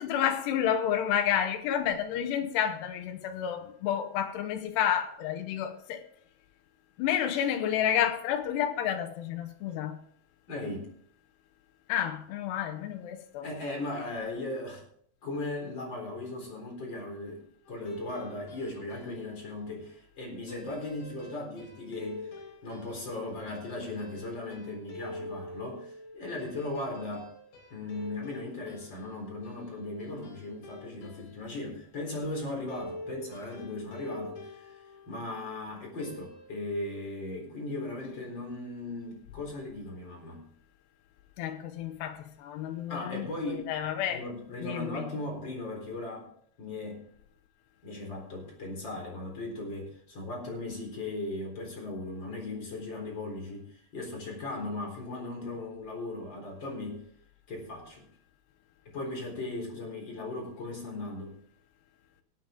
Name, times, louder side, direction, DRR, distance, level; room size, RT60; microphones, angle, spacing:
voice 1, 0.0-6.1 7.0-10.0 11.9-13.4 41.4-44.2 44.6-45.1, left 9 dB, 85° left, 3.2 m, -30 dB
voice 2, 10.5-10.9 13.4-14.8 15.2-22.3 22.6-27.3 27.7-34.7 35.1-40.5 42.9-43.7 44.1-46.3 46.6-47.1 47.8-57.0 57.5-58.1 58.9-61.4, left 2 dB, 30° left, 4.2 m, -37 dB
sound 1, 17.6-19.5 20.5-31.6 32.7-35.6 36.0-36.5, left 1 dB, 65° left, 5.2 m, -46 dB
18.0 x 9.1 x 3.8 m
omnidirectional pair, 4.7 m